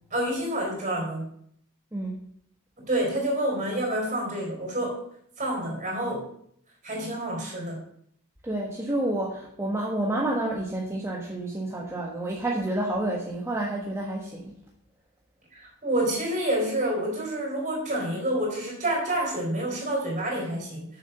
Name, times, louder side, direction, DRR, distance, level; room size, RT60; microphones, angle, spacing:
voice 1, 0.1-1.2 2.8-5.0 5.4-6.3 6.8-7.8 15.6-21.0, right 1 dB, 35° right, -1 dB, 4.2 m, -28 dB
voice 2, 8.4-14.5, right 1 dB, 10° right, -3 dB, 1.3 m, -29 dB
7.7 x 6.8 x 6.8 m, 0.69 s
head